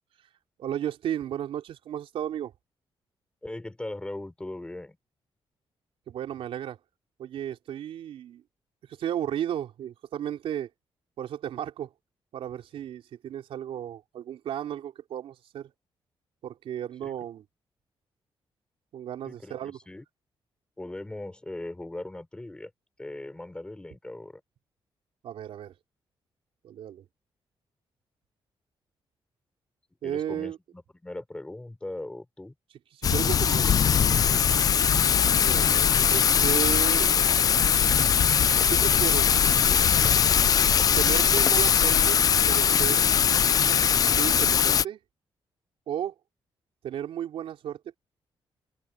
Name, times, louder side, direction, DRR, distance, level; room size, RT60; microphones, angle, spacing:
voice 1, 0.6-2.5 6.1-6.8 7.2-8.4 8.9-10.7 11.2-11.9 12.3-15.7 16.4-17.4 18.9-19.8 25.2-25.7 26.6-27.0 30.0-30.6 32.9-33.7 35.4-35.7 36.1-37.1 38.7-39.9 40.6-42.2 42.5-43.0 43.6-45.0 45.9-46.1 46.8-48.0, right 10 dB, 85° right, 4.1 m, -34 dB
voice 2, 3.4-5.0 17.0-17.1 19.2-20.0 20.8-22.7 23.0-24.4 30.0-32.5, left 1 dB, 10° left, 4.4 m, -39 dB
Thunder / Rain, 33.0-44.8, left 8 dB, 40° left, 0.4 m, -21 dB
wide cardioid pair, 155°, 9 cm